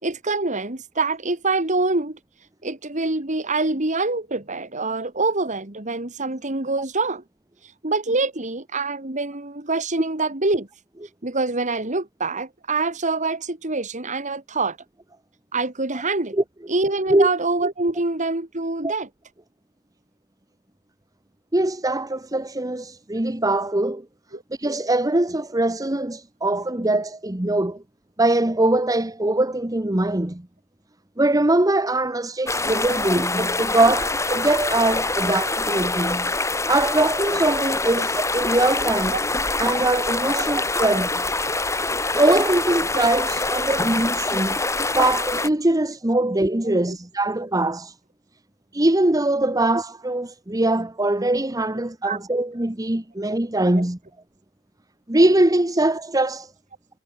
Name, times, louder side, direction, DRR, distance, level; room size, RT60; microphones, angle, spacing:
voice 1, 0.0-2.2 2.6-7.2 7.8-10.7 11.2-14.8 15.5-16.3 16.7-19.1 24.3-24.4 39.1-39.2 40.4-40.5 46.9-47.0 52.1-52.2, right 3 dB, 35° right, 2.1 m, -25 dB
voice 2, 21.5-24.1 24.6-27.8 28.2-30.5 31.2-36.3 36.7-39.2 39.6-41.2 42.1-44.6 44.9-47.9 48.7-54.0 55.1-56.5, right 2 dB, 15° right, 1.0 m, -22 dB
sound 1, 32.5-45.5, left 2 dB, 15° left, 3.7 m, -25 dB
head